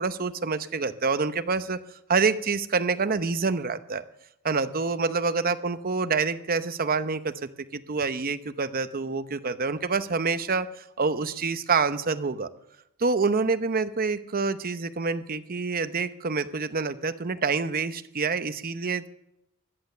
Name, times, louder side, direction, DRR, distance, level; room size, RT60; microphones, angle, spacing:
voice 1, 0.0-1.8 2.1-4.0 4.4-7.3 7.7-12.5 13.0-19.1, right 4 dB, 40° right, 11 dB, 0.8 m, -27 dB
16.5 x 12.0 x 6.7 m, 0.82 s
head